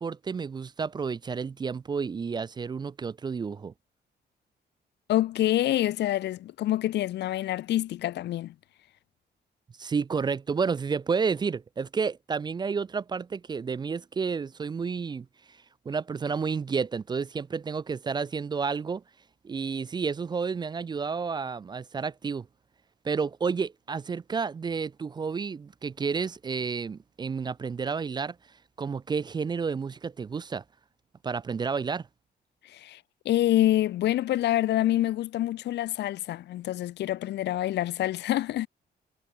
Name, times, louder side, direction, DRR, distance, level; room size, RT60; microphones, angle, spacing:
voice 1, 0.0-3.7 9.8-15.6 15.9-19.0 19.4-22.5 23.0-28.4 28.8-30.6 31.2-32.1, right 5 dB, 25° right, 0.4 m, -31 dB
voice 2, 5.1-8.5 32.7-33.0 33.3-38.7, left 14 dB, 75° left, 0.5 m, -26 dB
wide cardioid pair, 150°, 18 cm